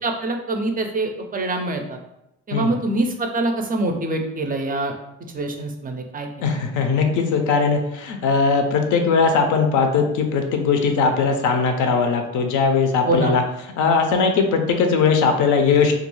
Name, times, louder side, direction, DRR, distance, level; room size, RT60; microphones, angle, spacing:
voice 1, 0.0-2.0 2.5-4.9 5.3-6.3 13.0-13.3, right 2 dB, 30° right, 4 dB, 0.4 m, -24 dB
voice 2, 6.4-13.4 13.8-15.9, left 5 dB, 80° left, 5 dB, 0.5 m, -19 dB
2.3 x 2.2 x 3.0 m, 0.85 s
cardioid pair, 90°, 30 cm